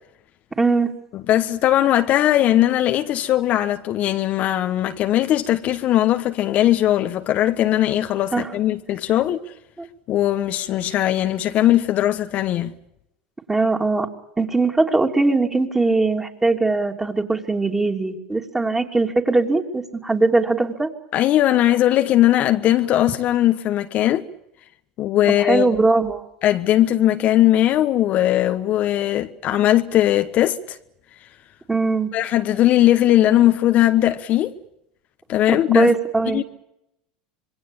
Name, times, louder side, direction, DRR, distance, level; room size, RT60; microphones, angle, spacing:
voice 1, 0.6-0.9 8.3-8.5 9.8-9.9 13.5-14.1 14.4-20.9 25.3-26.2 31.7-32.1 35.5-36.4, right 3 dB, 15° right, 3.2 m, -20 dB
voice 2, 1.1-9.4 10.1-12.7 21.1-24.3 25.0-25.7 26.4-30.8 32.1-34.5 35.3-35.9 36.3-36.4, left 13 dB, 50° left, 1.3 m, -19 dB
26.0 x 22.0 x 7.2 m
hypercardioid pair, 90°, 3 cm